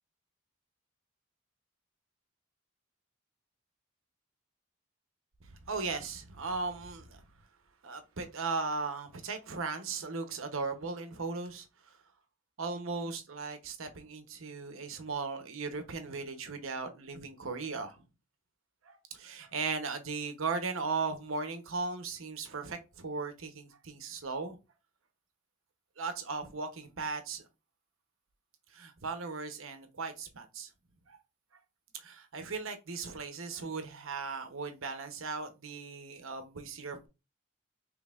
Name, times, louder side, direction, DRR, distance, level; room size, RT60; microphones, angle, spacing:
voice 1, 5.4-7.2 7.8-12.0 12.6-18.0 18.8-24.6 26.0-27.4 28.7-30.7 31.1-31.2 31.9-37.1, right 4 dB, 80° right, 0.9 m, -37 dB
5.2 x 3.3 x 2.4 m
head